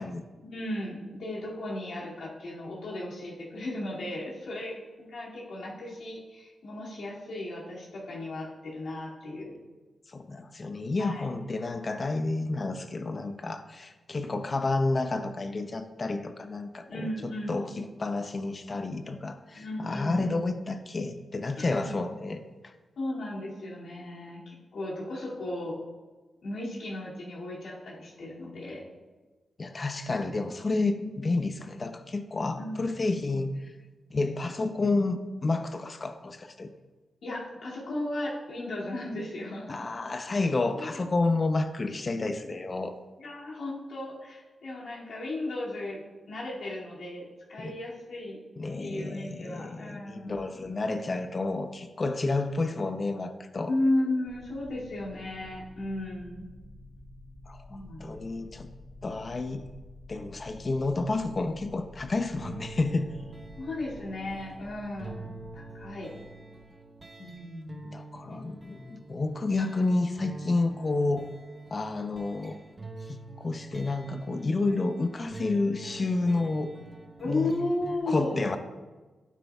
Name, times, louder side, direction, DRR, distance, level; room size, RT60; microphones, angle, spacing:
voice 1, 0.4-9.6 11.0-11.3 16.9-17.6 19.5-20.5 21.6-21.9 23.0-25.8 26.4-28.9 31.0-31.1 32.6-32.8 37.2-39.8 40.8-41.0 43.2-48.4 48.8-50.5 53.7-56.5 57.7-58.1 58.4-58.6 63.6-66.1 67.2-67.7 68.3-68.5 77.2-78.4, left 1 dB, 75° left, -6 dB, 2.5 m, -35 dB
voice 2, 10.1-22.4 29.6-33.6 34.1-36.7 39.7-42.9 47.6-47.7 48.6-53.7 57.5-58.7 59.0-59.6 60.1-63.1 67.8-71.3 71.7-72.6 73.1-76.7 77.2-77.5 78.1-78.6, left 3 dB, 45° left, 8 dB, 0.7 m, -30 dB
sound 1, 54.2-67.2, left 1 dB, ahead, 2.4 m, -50 dB
sound 2, 62.4-78.0, right 2 dB, 30° right, 1.1 m, -46 dB
9.4 x 8.8 x 2.4 m, 1.2 s
cardioid pair, 55°, 0 cm